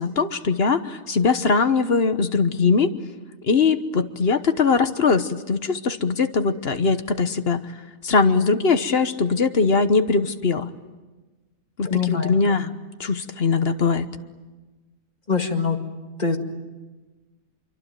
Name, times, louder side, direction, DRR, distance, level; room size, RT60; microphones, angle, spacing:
voice 1, 0.0-2.9 3.4-7.6 8.0-10.7 11.8-14.1, left 4 dB, 45° left, 10 dB, 1.3 m, -21 dB
voice 2, 11.9-12.7 15.3-15.8 16.2-16.4, left 5 dB, 25° left, 4 dB, 2.2 m, -24 dB
26.5 x 24.0 x 9.2 m, 1.2 s
omnidirectional pair, 1.6 m